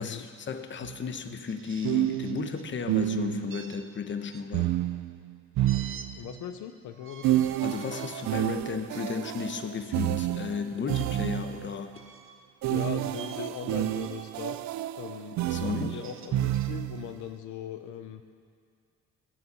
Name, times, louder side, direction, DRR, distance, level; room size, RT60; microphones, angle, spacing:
voice 1, 0.0-4.8 7.6-12.0 15.3-16.0, left 6 dB, 40° left, 8 dB, 0.9 m, -34 dB
sound 1, 0.8-1.0 1.8-3.6 4.5-6.4 7.2-11.7 12.6-17.1, right 14 dB, 70° right, 0.5 m, -30 dB
sound 2, 1.5-2.7 3.5-4.5 5.6-6.1 6.9-8.3 8.9-9.1 10.9-11.1 11.9-12.5 13.1-13.4 13.8-14.3 15.8-16.7, right 6 dB, 45° right, 1.1 m, -48 dB
voice 2, 6.2-7.4 12.7-14.6 15.0-18.2, left 9 dB, 75° left, 9 dB, 0.7 m, -39 dB
17.0 x 7.2 x 6.9 m, 2.2 s
cardioid pair, 90°, 30 cm